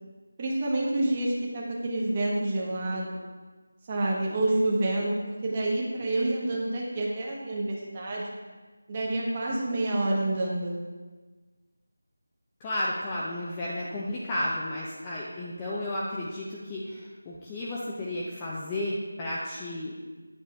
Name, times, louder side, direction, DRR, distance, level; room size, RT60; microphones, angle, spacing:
voice 1, 0.4-3.2 3.9-5.2 5.4-8.3 8.9-10.8, right 1 dB, 20° right, -3 dB, 1.1 m, -28 dB
voice 2, 12.6-19.9, left 1 dB, 10° left, -6 dB, 0.5 m, -33 dB
9.0 x 6.8 x 3.3 m, 1.3 s
figure-of-eight pair, 180°, 0 cm